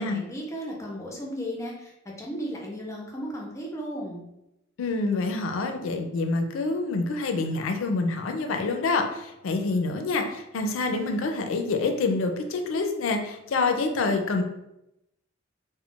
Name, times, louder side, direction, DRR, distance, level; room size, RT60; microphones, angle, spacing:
voice 1, 0.0-1.9 2.2-4.2, equal, 15° left, -2 dB, 0.6 m, -35 dB
voice 2, 4.8-14.4, left 3 dB, 75° left, 5 dB, 0.4 m, -27 dB
2.3 x 2.1 x 3.6 m, 0.87 s
head